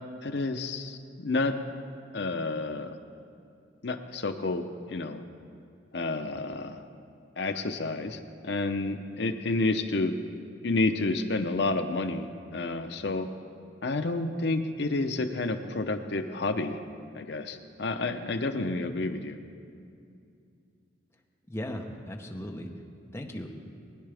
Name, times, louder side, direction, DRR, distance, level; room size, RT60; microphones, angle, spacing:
voice 1, 0.2-1.5 2.1-2.9 3.8-4.6 4.9-5.2 5.9-6.8 7.4-10.1 10.6-13.3 13.8-16.8 17.1-19.4, left 2 dB, 65° left, 6 dB, 0.7 m, -30 dB
voice 2, 21.5-22.7 23.1-23.6, left 1 dB, 15° left, 1 dB, 0.9 m, -37 dB
20.5 x 9.9 x 3.4 m, 2.5 s
head